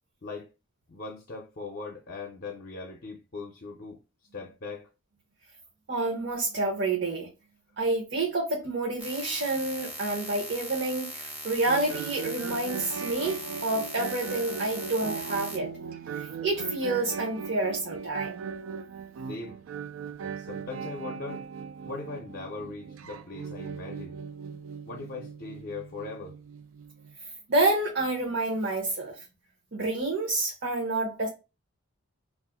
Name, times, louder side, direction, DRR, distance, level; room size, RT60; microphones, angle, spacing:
voice 1, 0.9-4.0 4.3-4.9 19.3-19.6 20.2-21.4 21.8-24.2 24.9-26.4, left 3 dB, 50° left, 0.5 m, -39 dB
voice 2, 5.9-7.3 7.8-15.7 16.1-18.5 27.5-29.2 29.7-31.3, right 2 dB, 60° right, 0.7 m, -28 dB
sound 1, 9.0-15.6, right 1 dB, 5° right, 0.4 m, -40 dB
sound 2, 11.7-27.1, right 6 dB, 90° right, 0.4 m, -39 dB
2.5 x 2.4 x 3.5 m
head